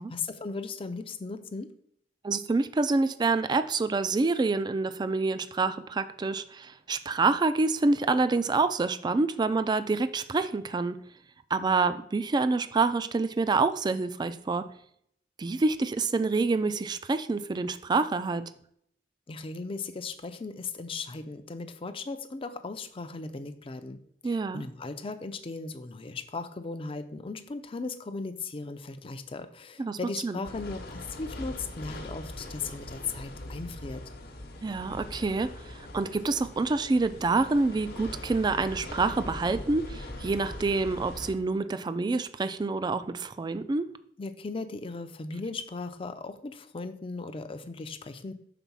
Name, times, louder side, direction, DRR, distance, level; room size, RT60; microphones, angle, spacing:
voice 1, 0.0-1.7 19.3-24.0 24.2-34.0 44.2-48.3, left 4 dB, 30° left, 10 dB, 0.5 m, -37 dB
voice 2, 2.2-11.0 11.5-14.6 15.4-18.5 24.2-24.6 29.8-30.0 30.2-30.4 34.6-43.9, right 3 dB, 25° right, 11 dB, 0.3 m, -27 dB
sound 1, 30.4-41.3, left 1 dB, 60° left, 0.9 m, -41 dB
5.9 x 4.1 x 5.4 m, 0.69 s
head